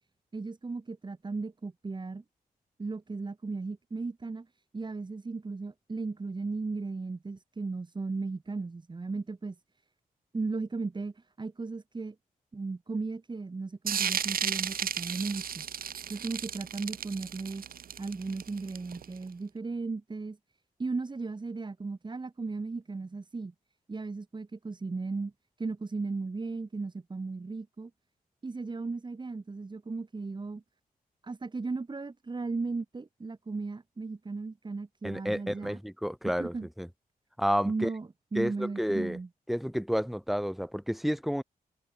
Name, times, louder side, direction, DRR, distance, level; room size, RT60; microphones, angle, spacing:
voice 1, 0.3-2.2 2.8-4.5 4.7-9.6 10.3-12.2 12.5-15.7 16.1-17.6 18.0-20.4 20.8-23.5 23.9-25.3 25.6-27.9 28.4-30.6 31.2-35.8 36.4-36.7 37.6-39.3, right 3 dB, 30° right, 5.3 m, -36 dB
sound 1, 13.9-19.2, right 8 dB, 65° right, 1.7 m, -34 dB
voice 2, 35.0-36.9 37.4-37.9 38.4-39.2 39.5-41.4, equal, ahead, 2.1 m, -30 dB
wide cardioid pair, 120°, 16 cm